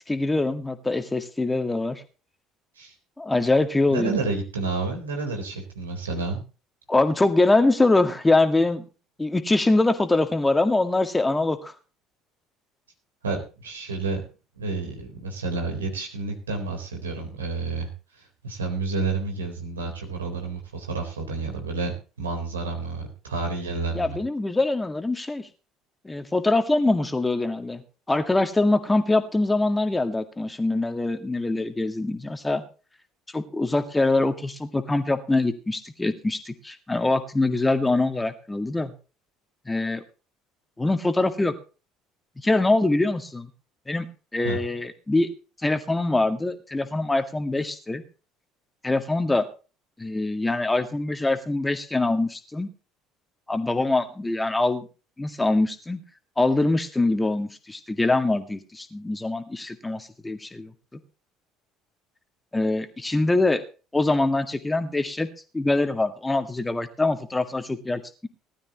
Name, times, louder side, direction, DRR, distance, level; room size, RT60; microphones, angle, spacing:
voice 1, 0.1-2.0 3.2-4.2 6.9-8.8 9.2-11.7 23.9-25.5 26.0-27.8 28.1-32.6 33.3-38.9 39.7-40.0 40.8-41.5 42.4-43.5 43.9-44.1 44.3-45.3 45.6-48.0 48.8-49.5 50.0-52.7 53.5-54.9 55.2-56.0 56.4-60.7 62.5-63.6 63.9-65.3 65.5-68.3, left 2 dB, 15° left, 8 dB, 2.0 m, -23 dB
voice 2, 3.9-6.4 13.2-14.2 14.6-17.9 18.2-21.9 22.2-24.2 44.4-44.6, right 3 dB, 80° right, 2 dB, 3.9 m, -30 dB
19.5 x 12.5 x 3.0 m, 0.34 s
figure-of-eight pair, 60°, 0 cm